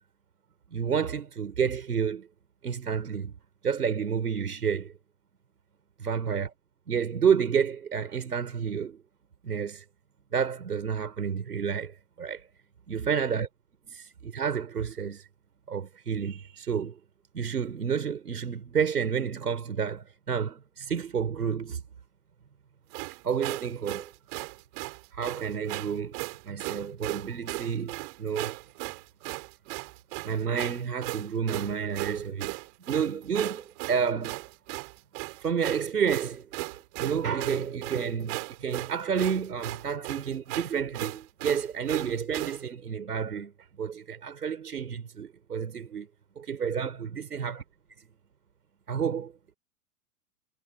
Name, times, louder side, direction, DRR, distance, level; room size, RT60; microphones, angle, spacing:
voice 1, 0.7-2.3 2.6-3.3 3.6-4.9 6.0-6.5 6.9-9.0 9.4-9.8 10.3-12.4 12.9-13.5 13.9-15.2 15.7-17.0 17.3-21.8 23.2-24.1 25.1-26.2 26.4-28.6 30.2-32.5 32.9-34.4 35.4-36.5 37.0-43.5 43.8-46.1 46.4-47.6 48.9-49.3, right 7 dB, 85° right, 7.0 m, -30 dB
sound 1, 22.9-42.6, right 36 dB, 50° right, 5.6 m, -37 dB
hypercardioid pair, 105°, 45 cm